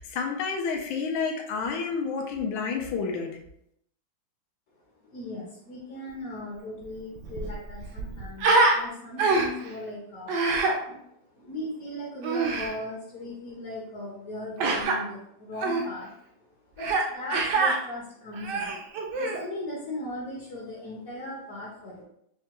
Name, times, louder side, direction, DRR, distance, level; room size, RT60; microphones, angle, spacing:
voice 1, 0.0-3.3, left 5 dB, 85° left, 2 dB, 1.4 m, -30 dB
voice 2, 5.0-16.3 16.7-18.8 19.1-22.0, left 1 dB, 60° left, -5 dB, 1.1 m, -38 dB
Human voice, 6.8-6.9 7.2-8.8 9.2-9.7 10.3-10.8 12.2-12.7 14.6-15.0 15.6-15.8 16.8-17.1 17.3-17.8 18.3-19.4, right 3 dB, 70° right, 1.2 m, -25 dB
5.6 x 2.2 x 2.9 m, 0.75 s
omnidirectional pair, 2.1 m